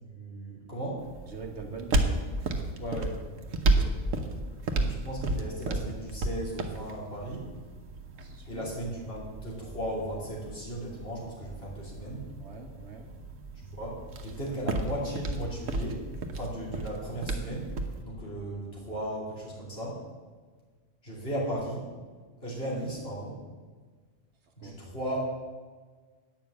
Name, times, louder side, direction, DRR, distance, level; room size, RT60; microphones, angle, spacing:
voice 1, 0.0-1.0 2.8-3.2 4.8-7.5 8.4-12.2 13.8-16.0 16.3-17.7 18.0-20.0 21.0-21.9 22.4-23.4 24.6-25.2, right 1 dB, 50° left, -5 dB, 3.3 m, -36 dB
sound 1, 1.0-18.0, right 2 dB, 80° right, 1.3 m, -33 dB
voice 2, 1.3-2.0 3.7-3.9 8.2-8.6 12.4-13.1 14.5-14.6 24.6-24.8, right 4 dB, 60° right, 3 dB, 1.4 m, -43 dB
9.1 x 5.8 x 8.3 m, 1.4 s
omnidirectional pair, 1.3 m